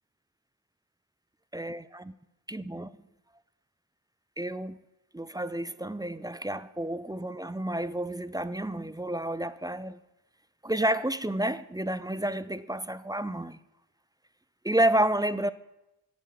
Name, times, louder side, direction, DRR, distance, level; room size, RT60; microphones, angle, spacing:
voice 1, 1.5-2.1 2.5-2.9 4.4-4.8 5.1-10.0 10.6-13.6 14.6-15.5, right 1 dB, 10° right, 0.3 m, -30 dB
9.1 x 8.1 x 6.6 m
cardioid pair, 45°, 48 cm